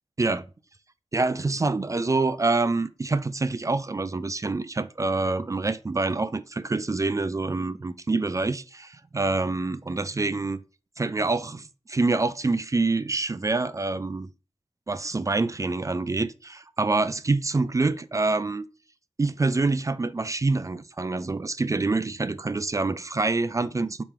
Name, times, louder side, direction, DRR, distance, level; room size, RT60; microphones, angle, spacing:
voice 1, 1.1-10.6 11.0-14.3 14.9-18.7 19.2-24.0, right 3 dB, 30° right, 0.3 m, -26 dB
3.6 x 3.0 x 4.4 m
cardioid pair, 45°, 11 cm